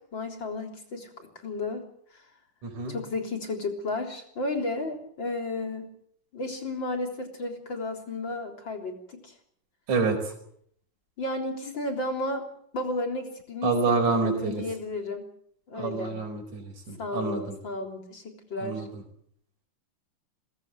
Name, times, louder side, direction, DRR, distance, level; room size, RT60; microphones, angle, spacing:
voice 1, 0.1-1.8 2.9-5.9 6.3-9.3 11.2-12.4 12.7-15.3 15.7-16.1 17.0-18.9, left 2 dB, 35° left, 4 dB, 4.2 m, -33 dB
voice 2, 13.6-14.6 15.8-17.4 18.6-18.9, right 4 dB, 65° right, 1 dB, 5.9 m, -27 dB
22.5 x 18.0 x 9.1 m, 0.67 s
omnidirectional pair, 3.6 m